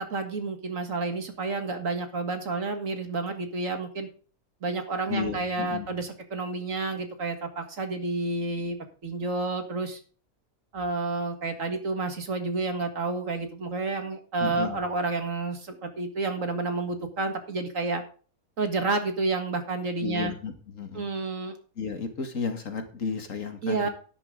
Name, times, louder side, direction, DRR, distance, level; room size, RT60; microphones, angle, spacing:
voice 1, 0.1-4.1 4.6-8.8 9.0-10.0 10.7-18.0 18.6-20.3 20.9-21.5 23.6-23.9, right 3 dB, 60° right, 7 dB, 2.2 m, -30 dB
voice 2, 5.1-5.9 14.4-14.8 20.0-21.1 21.8-23.9, left 5 dB, 60° left, 6 dB, 2.2 m, -33 dB
11.5 x 10.5 x 3.7 m, 0.39 s
omnidirectional pair, 1.5 m